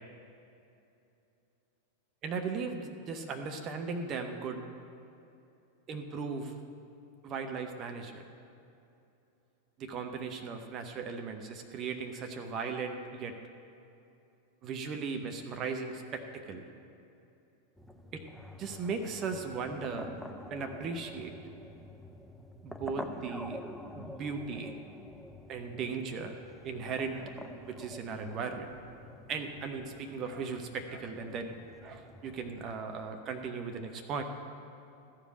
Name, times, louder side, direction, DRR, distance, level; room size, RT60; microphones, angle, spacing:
voice 1, 2.2-4.6 5.9-6.5 7.2-8.3 9.8-13.4 14.6-16.7 18.1-18.2 18.6-20.1 20.5-21.3 22.6-23.6 24.0-24.8 25.5-26.3 26.6-27.3 27.7-28.7 29.3-31.6 31.8-34.2, right 5 dB, 30° right, 5 dB, 0.9 m, -37 dB
sound 1, 17.8-32.8, equal, ahead, 0.5 m, -48 dB
14.0 x 5.1 x 8.4 m, 2.8 s
figure-of-eight pair, 90°, 0 cm